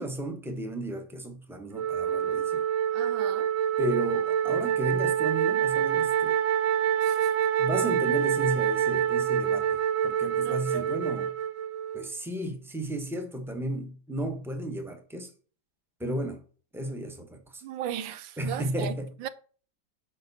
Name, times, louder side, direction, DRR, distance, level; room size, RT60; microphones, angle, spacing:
voice 1, 0.0-2.6 3.8-6.4 7.6-11.3 11.9-15.3 16.0-16.4 16.7-17.6 18.4-19.1, right 1 dB, 5° right, 0.3 m, -33 dB
Wind instrument woodwind instrument, 1.7-12.1, right 9 dB, 50° right, 1.0 m, -26 dB
voice 2, 2.9-3.5 7.0-7.3 10.4-10.9 17.6-18.9 19.2-19.3, right 11 dB, 80° right, 1.4 m, -36 dB
7.8 x 5.3 x 4.0 m
omnidirectional pair, 2.1 m